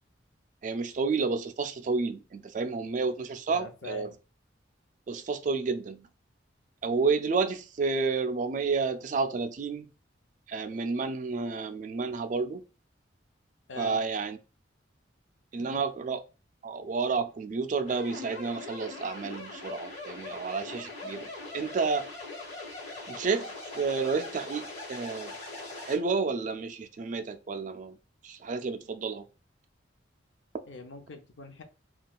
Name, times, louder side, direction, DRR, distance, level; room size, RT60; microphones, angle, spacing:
voice 1, 0.6-4.1 5.1-6.1 6.8-9.9 10.5-12.6 13.8-14.4 15.5-16.2 16.6-22.1 23.1-25.3 25.8-28.0 28.2-29.3, right 4 dB, 40° right, 0.3 m, -30 dB
voice 2, 3.5-4.2 13.7-14.0 15.5-15.8 30.6-31.6, left 4 dB, 75° left, 0.6 m, -43 dB
sound 1, 17.9-26.0, left 2 dB, 35° left, 1.1 m, -41 dB
3.6 x 2.3 x 2.2 m
head